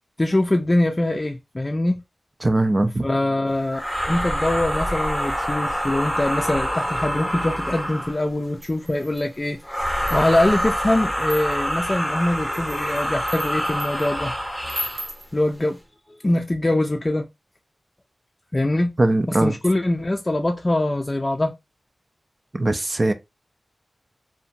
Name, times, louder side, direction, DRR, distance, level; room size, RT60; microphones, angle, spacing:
voice 1, 0.2-2.0 3.0-3.8 4.1-9.8 10.1-14.3 15.3-15.8 16.1-17.3 18.5-18.9 19.3-21.5, left 1 dB, 35° left, 0.4 m, -23 dB
voice 2, 2.4-3.1 19.0-19.6 22.5-23.1, right 2 dB, 40° right, 0.3 m, -20 dB
sound 1, 3.7-8.3 9.6-15.1, equal, 5° right, 0.8 m, -26 dB
sound 2, 8.6-9.4 9.9-10.6 11.2-11.8 12.4-14.1 14.7-15.3, equal, 75° right, 0.9 m, -36 dB
2.7 x 2.1 x 2.5 m
cardioid pair, 45°, 0 cm